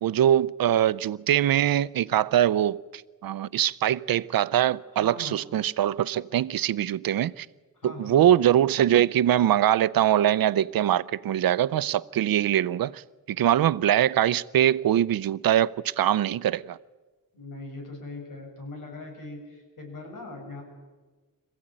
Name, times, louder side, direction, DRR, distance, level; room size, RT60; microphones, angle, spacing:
voice 1, 0.0-7.5 7.8-13.0 13.3-16.8, right 11 dB, 90° right, 0.6 m, -23 dB
voice 2, 5.0-5.3 7.8-8.2 17.3-20.6, left 2 dB, 65° left, 7.1 m, -40 dB
25.5 x 15.5 x 8.9 m
wide cardioid pair, 150°, 34 cm